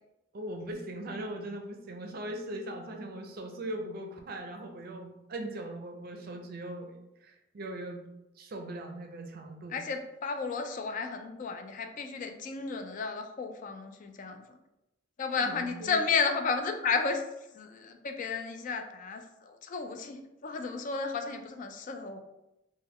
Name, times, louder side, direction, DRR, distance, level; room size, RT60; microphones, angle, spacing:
voice 1, 0.3-6.9 7.2-8.0 8.4-9.9 15.3-16.1, right 1 dB, 50° right, 3 dB, 0.5 m, -40 dB
voice 2, 9.7-14.4 15.2-17.2 17.5-22.2, left 4 dB, 45° left, 6 dB, 0.3 m, -33 dB
3.2 x 2.2 x 3.4 m, 0.91 s
head